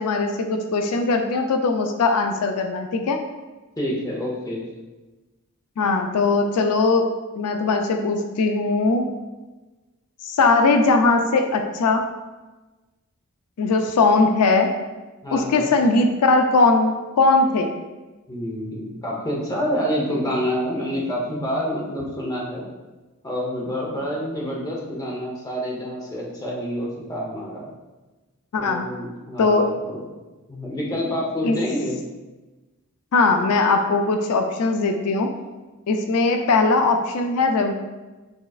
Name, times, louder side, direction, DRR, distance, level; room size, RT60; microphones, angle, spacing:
voice 1, 0.0-3.2 5.8-9.1 10.2-12.0 13.6-14.7 15.3-17.7 28.5-28.9 29.4-29.7 31.4-31.6 33.1-35.3 35.9-37.7, left 3 dB, 85° left, 5 dB, 0.4 m, -20 dB
voice 2, 3.8-4.6 15.2-15.7 18.3-22.7 23.2-27.7 28.6-30.0 30.5-32.0, equal, 15° left, -3 dB, 0.8 m, -27 dB
6.3 x 3.1 x 2.4 m, 1.2 s
head